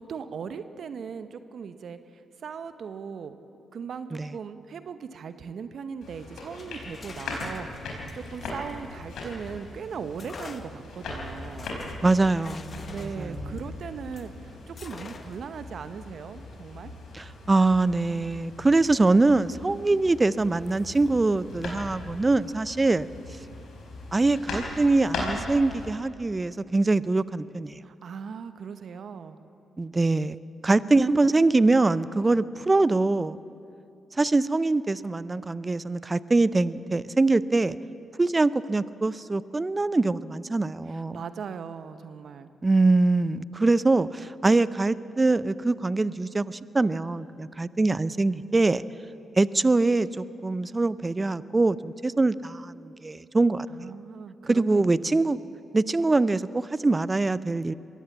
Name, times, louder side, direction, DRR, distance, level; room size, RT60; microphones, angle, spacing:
voice 1, 0.0-2.0 2.4-3.4 3.7-11.7 12.9-14.3 14.7-16.9 27.8-29.4 40.9-42.5 53.7-55.2, right 6 dB, 60° right, 11 dB, 0.9 m, -38 dB
sound 1, 6.0-25.9, left 2 dB, 70° left, 4.6 m, -39 dB
sound 2, 6.5-9.5 10.2-14.3 14.8-15.5, left 4 dB, 50° left, 1.3 m, -47 dB
voice 2, 12.0-13.6 17.1-23.1 24.1-27.8 29.8-30.4 30.6-33.4 34.2-37.8 38.2-41.2 42.6-48.8 49.4-53.7 54.5-55.4 55.7-57.7, right 3 dB, 30° right, 17 dB, 0.6 m, -23 dB
22.5 x 16.5 x 7.2 m, 2.6 s
hypercardioid pair, 40°, 0 cm